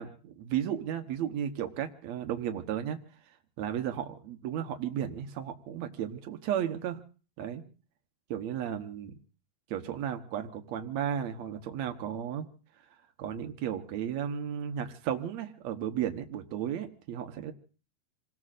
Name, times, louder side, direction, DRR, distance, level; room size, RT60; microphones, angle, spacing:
voice 1, 0.0-3.0 3.6-7.0 7.4-7.6 8.3-9.1 9.7-12.5 13.2-17.5, right 9 dB, 85° right, 6 dB, 1.5 m, -34 dB
28.0 x 19.0 x 2.5 m, 0.38 s
omnidirectional pair, 4.7 m